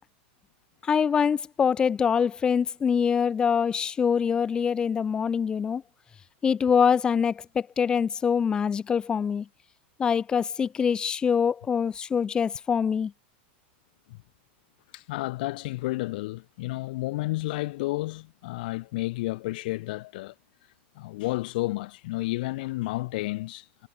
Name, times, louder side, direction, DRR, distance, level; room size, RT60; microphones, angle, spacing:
voice 1, 0.8-5.8 6.4-9.5 10.0-13.1, left 7 dB, 15° left, 0.9 m, -24 dB
voice 2, 14.9-20.3 21.0-23.9, left 19 dB, 55° left, 0.6 m, -31 dB
supercardioid pair, 165°, 6 cm